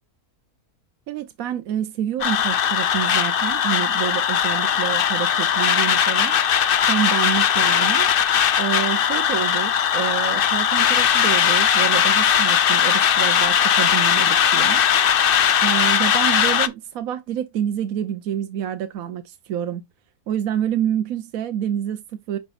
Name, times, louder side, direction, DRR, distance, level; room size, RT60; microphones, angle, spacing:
voice 1, 1.1-8.1 8.6-14.9 15.6-19.8 20.3-22.4, right 10 dB, 70° right, 1.0 m, -27 dB
sound 1, 2.2-16.7, left 9 dB, 60° left, 0.5 m, -19 dB
9.6 x 4.6 x 2.4 m
omnidirectional pair, 1.6 m